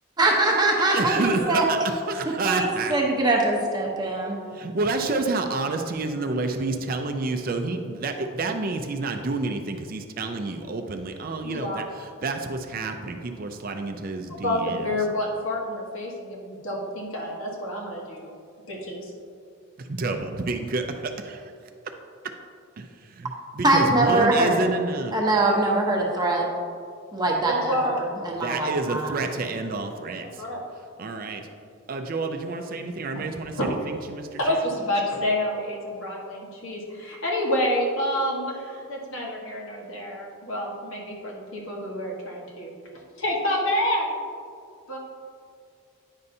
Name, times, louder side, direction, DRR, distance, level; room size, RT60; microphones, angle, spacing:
voice 1, 0.2-1.6 2.4-4.4 23.6-24.6 25.1-26.5 27.1-29.1, right 2 dB, 20° right, -1 dB, 0.8 m, -22 dB
voice 2, 0.8-2.9 4.5-14.8 19.8-21.5 22.2-22.3 22.8-22.9 23.2-25.1 28.3-30.4 31.0-31.4 31.9-34.6, right 3 dB, 40° right, 5 dB, 0.4 m, -29 dB
voice 3, 11.4-11.8 14.3-18.4 18.7-19.1 27.5-28.0 30.4-30.6 33.6-33.7 34.4-42.7 43.2-44.1 44.9-45.0, left 1 dB, 65° left, -2 dB, 1.3 m, -28 dB
9.6 x 5.4 x 2.7 m, 2.3 s
head